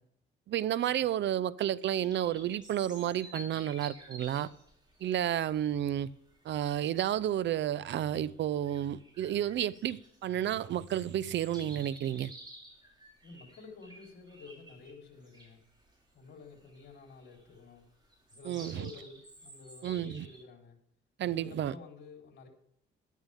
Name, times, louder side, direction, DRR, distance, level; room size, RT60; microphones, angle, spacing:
voice 1, 0.5-4.5 5.0-6.1 6.4-12.3 18.4-18.8 19.8-20.3 21.2-21.7, right 11 dB, 65° right, 0.6 m, -31 dB
sound 1, 1.9-20.4, right 1 dB, 20° right, 5.7 m, -53 dB
voice 2, 13.2-15.6 16.1-17.8 18.3-20.8 21.2-22.5, left 4 dB, 60° left, 4.0 m, -51 dB
13.0 x 12.0 x 3.6 m
cardioid pair, 90°, 20 cm